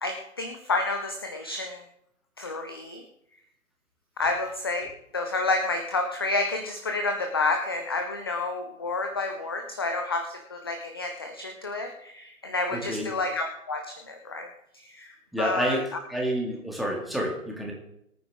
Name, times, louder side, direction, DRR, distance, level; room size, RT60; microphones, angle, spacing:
voice 1, 0.0-1.8 2.4-3.0 4.2-15.9, left 3 dB, 20° left, 6 dB, 0.4 m, -30 dB
voice 2, 12.7-13.1 15.3-15.8 16.1-17.7, right 1 dB, ahead, -2 dB, 1.9 m, -29 dB
23.5 x 9.1 x 3.5 m, 0.77 s
figure-of-eight pair, 135°, 42 cm